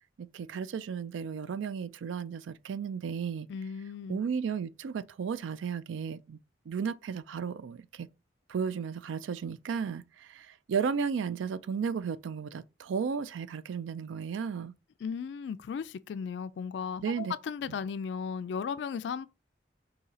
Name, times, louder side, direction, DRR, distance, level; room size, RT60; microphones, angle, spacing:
voice 1, 0.2-3.5 4.1-6.4 6.7-8.1 8.5-14.7 17.0-17.3 17.7-17.8, right 6 dB, 90° right, 0.3 m, -34 dB
voice 2, 3.5-4.2 15.0-19.3, left 6 dB, 70° left, 0.3 m, -36 dB
3.9 x 2.8 x 4.1 m
head